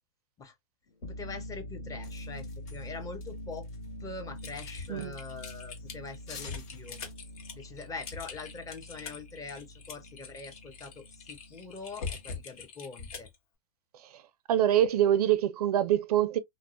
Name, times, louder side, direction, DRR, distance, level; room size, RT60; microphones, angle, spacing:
sound 1, 0.9-12.4, left 1 dB, 85° left, 1.3 m, -45 dB
voice 1, 1.1-3.7 4.0-7.0 7.5-13.3, left 4 dB, 15° left, 0.6 m, -43 dB
sound 2, 2.0-3.9 4.2-5.7 6.1-7.1, left 6 dB, 40° left, 1.3 m, -50 dB
Typing, 4.4-13.3, left 5 dB, 65° left, 1.1 m, -43 dB
voice 2, 14.5-16.4, right 11 dB, 75° right, 0.4 m, -24 dB
2.6 x 2.0 x 2.4 m
hypercardioid pair, 120°, 20 cm